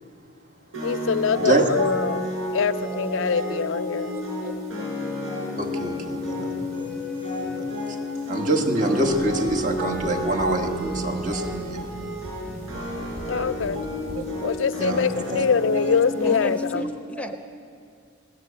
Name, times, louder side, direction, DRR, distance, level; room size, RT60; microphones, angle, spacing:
sound 1, 0.7-16.7, left 1 dB, 80° right, 7.9 m, -31 dB
voice 1, 0.8-4.2 13.3-13.9 14.4-16.8, left 6 dB, 70° left, 13 dB, 0.5 m, -24 dB
voice 2, 1.4-1.9 2.8-3.1 4.1-4.5 4.8-4.9 5.6-7.0 7.4-7.7 8.3-11.9 14.1-15.4 15.8-15.9 16.7-16.8, right 2 dB, 35° right, 3 dB, 1.7 m, -26 dB
sound 2, 9.0-14.3, equal, 55° right, 3.8 m, -40 dB
voice 3, 16.1-17.4, left 1 dB, 5° left, 6 dB, 0.8 m, -33 dB
21.0 x 17.0 x 8.7 m, 2.3 s
head